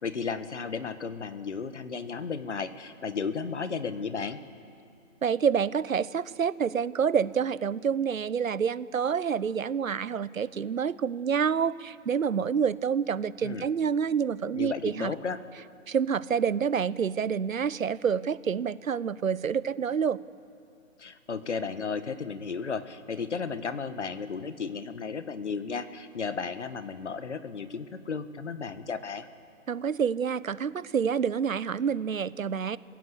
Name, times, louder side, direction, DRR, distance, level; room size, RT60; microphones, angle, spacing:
voice 1, 0.0-4.4 13.4-13.7 14.5-15.4 21.0-29.3, left 5 dB, 55° left, 12 dB, 1.4 m, -34 dB
voice 2, 5.2-15.1 15.9-20.2 29.7-32.8, right 7 dB, 75° right, 19 dB, 0.8 m, -28 dB
26.5 x 16.0 x 8.0 m, 2.5 s
hypercardioid pair, 165°, 41 cm